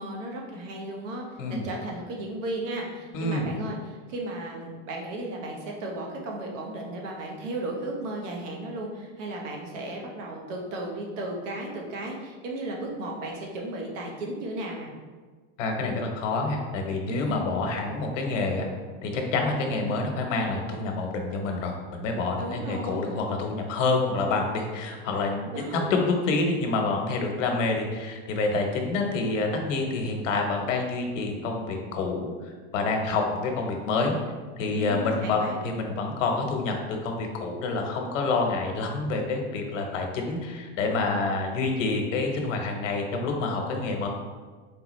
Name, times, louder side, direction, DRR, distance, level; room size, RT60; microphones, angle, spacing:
voice 1, 0.0-1.2 1.5-14.9 17.1-17.4 22.4-23.1 25.5-25.9 34.7-35.5, right 1 dB, 85° right, 0 dB, 1.2 m, -35 dB
voice 2, 3.1-3.5 15.6-18.7 19.0-34.2 34.6-44.1, left 3 dB, 90° left, 2 dB, 1.0 m, -27 dB
4.5 x 3.6 x 3.1 m, 1.4 s
supercardioid pair, 150°, 37 cm